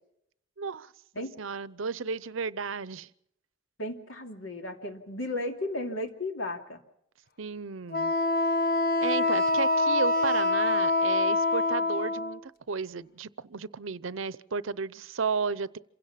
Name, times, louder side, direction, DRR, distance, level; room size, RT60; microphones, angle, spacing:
voice 1, 0.6-0.9 1.4-3.1 7.4-8.1 9.0-15.8, right 5 dB, 85° right, 0.7 m, -33 dB
voice 2, 3.8-6.8, left 1 dB, 80° left, 2.7 m, -34 dB
Wind instrument woodwind instrument, 7.9-12.4, left 2 dB, 50° left, 1.3 m, -25 dB
27.0 x 16.5 x 5.8 m
head